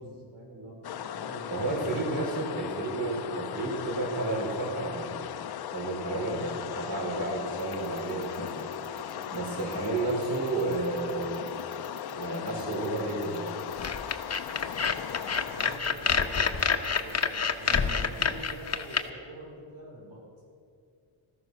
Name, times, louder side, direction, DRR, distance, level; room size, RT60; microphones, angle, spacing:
voice 1, 0.0-1.9 9.0-9.5 14.6-20.3, right 1 dB, 75° right, -3 dB, 5.2 m, -45 dB
sound 1, 0.8-15.8, left 10 dB, 50° left, 0.6 m, -38 dB
voice 2, 1.5-5.1 5.7-8.7 9.3-11.4 12.1-13.5, right 2 dB, 45° right, -3 dB, 4.7 m, -31 dB
sound 2, 7.6-17.2, left 1 dB, ahead, 1.3 m, -47 dB
sound 3, 13.8-19.0, left 5 dB, 30° left, 1.0 m, -27 dB
15.5 x 13.5 x 6.4 m, 2.4 s
cardioid pair, 90°, 48 cm